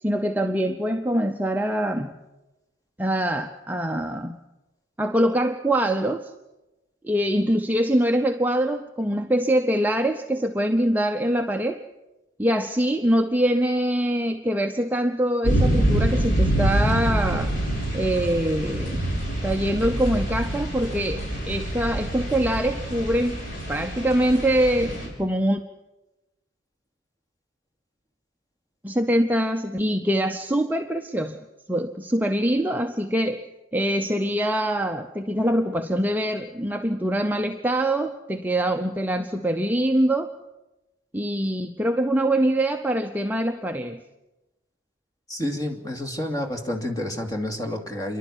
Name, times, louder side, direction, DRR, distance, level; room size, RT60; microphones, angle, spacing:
voice 1, 0.0-2.1 3.0-4.4 5.0-6.3 7.0-11.8 12.4-17.6 17.9-19.1 19.4-23.4 23.7-25.6 28.8-33.5 33.7-40.3 41.1-44.0, right 1 dB, 10° right, 4 dB, 0.7 m, -24 dB
sound 1, 15.4-25.1, right 1 dB, 45° left, 7.3 m, -26 dB
voice 2, 45.3-48.2, left 1 dB, 20° left, 2 dB, 2.6 m, -29 dB
28.5 x 11.5 x 10.0 m, 1.0 s
head